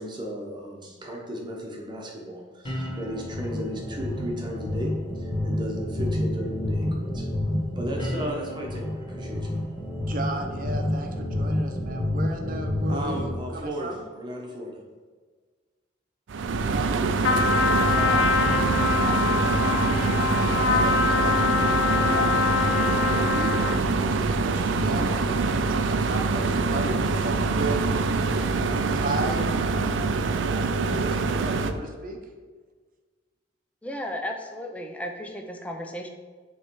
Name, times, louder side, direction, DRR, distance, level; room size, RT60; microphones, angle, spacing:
voice 1, 0.0-7.3 7.8-9.6 12.9-14.8, equal, 25° right, -1 dB, 1.0 m, -35 dB
sound 1, 2.6-13.3, left 1 dB, 25° left, 1.0 m, -29 dB
voice 2, 9.9-14.0 16.7-18.5 18.9-21.8 22.1-28.1 28.9-29.5 30.7-32.2, right 2 dB, 45° right, 3 dB, 0.7 m, -35 dB
sound 2, 16.3-31.7, right 3 dB, 75° right, 0.4 m, -24 dB
Trumpet, 17.2-23.9, left 5 dB, 70° left, 0.4 m, -24 dB
voice 3, 33.8-36.1, left 1 dB, 5° left, 3 dB, 0.5 m, -34 dB
7.0 x 3.2 x 4.6 m, 1.5 s
head